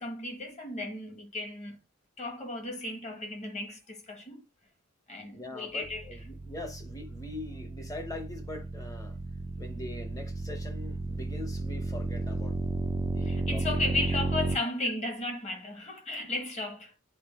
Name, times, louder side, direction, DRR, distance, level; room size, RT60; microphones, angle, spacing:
voice 1, 0.0-1.8 2.2-4.4 5.1-6.0 13.2-16.9, left 2 dB, 30° left, 1.5 m, -35 dB
voice 2, 5.3-9.2 9.6-12.6 13.1-14.0, left 2 dB, 15° left, 0.9 m, -42 dB
sound 1, 5.8-14.6, right 2 dB, 15° right, 0.5 m, -33 dB
8.2 x 3.7 x 3.5 m
head